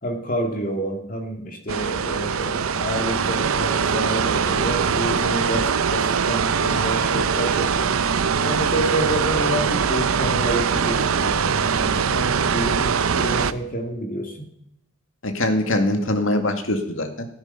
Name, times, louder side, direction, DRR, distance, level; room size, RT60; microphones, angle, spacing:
voice 1, 0.0-8.0 8.4-14.5, right 1 dB, 40° left, 4 dB, 2.3 m, -28 dB
sound 1, 1.7-13.5, right 6 dB, 85° right, 0.6 m, -22 dB
voice 2, 15.2-17.3, left 1 dB, 70° left, 6 dB, 2.1 m, -22 dB
14.0 x 12.5 x 5.6 m, 0.74 s
head